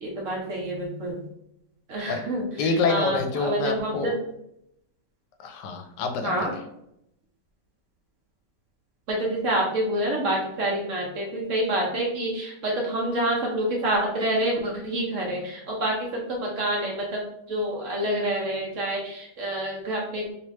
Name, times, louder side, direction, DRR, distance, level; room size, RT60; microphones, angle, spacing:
voice 1, 0.0-1.2 1.9-2.4 2.9-4.1 6.2-6.5 9.1-17.2 17.5-20.2, right 1 dB, 55° right, -2 dB, 0.9 m, -27 dB
voice 2, 2.6-4.1 5.4-6.6, left 4 dB, 75° left, 5 dB, 1.1 m, -27 dB
3.1 x 3.1 x 3.0 m, 0.78 s
omnidirectional pair, 1.8 m